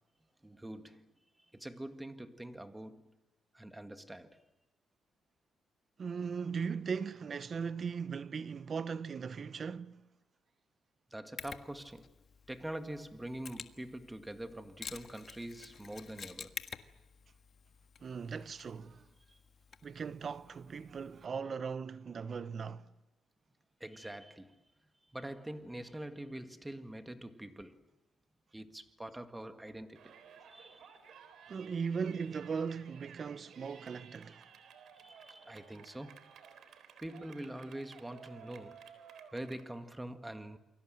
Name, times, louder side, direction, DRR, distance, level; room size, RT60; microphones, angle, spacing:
voice 1, 0.4-1.1 1.5-3.1 3.5-4.4 11.1-12.2 12.5-16.6 19.3-19.4 23.8-24.6 25.1-27.9 28.5-30.2 30.5-31.0 35.0-36.3 37.0-38.8 39.3-40.6, right 1 dB, 10° right, 1.9 m, -45 dB
voice 2, 6.0-10.1 18.0-19.1 19.8-22.9 31.5-34.5, right 6 dB, 45° right, 0.9 m, -38 dB
Mechanisms, 11.4-21.3, left 6 dB, 50° left, 1.5 m, -50 dB
Yell, 30.0-39.6, right 7 dB, 70° right, 3.7 m, -56 dB
28.5 x 23.0 x 7.8 m
cardioid pair, 90°, 0 cm